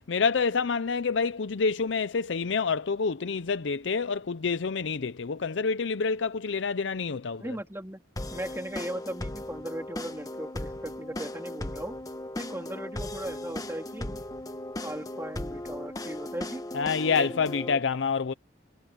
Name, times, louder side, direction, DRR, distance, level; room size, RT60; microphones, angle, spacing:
voice 1, 0.1-7.6 16.7-18.3, left 5 dB, 70° left, 0.6 m, -27 dB
voice 2, 7.4-8.0 8.3-12.0 12.4-14.2 14.8-16.6 17.1-17.4, right 1 dB, 15° right, 3.6 m, -38 dB
sound 1, 8.2-17.8, left 1 dB, 20° left, 1.1 m, -37 dB
head